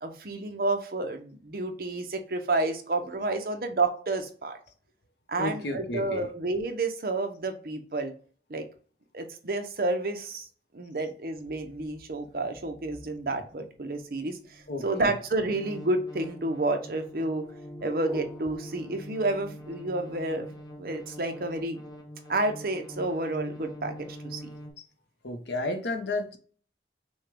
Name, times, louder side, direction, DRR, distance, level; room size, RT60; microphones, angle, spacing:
voice 1, 0.0-4.6 5.3-8.1 8.5-8.7 9.1-10.5 10.7-17.5 17.8-21.8 22.3-24.4, right 2 dB, 55° right, 0.7 m, -30 dB
voice 2, 5.4-6.3 14.7-15.1 24.8-24.9 25.2-26.4, left 2 dB, 80° left, 0.8 m, -32 dB
sound 1, 11.5-24.7, equal, 20° left, 1.1 m, -45 dB
sound 2, 13.7-19.7, left 1 dB, 5° left, 0.7 m, -49 dB
6.2 x 2.2 x 3.4 m
head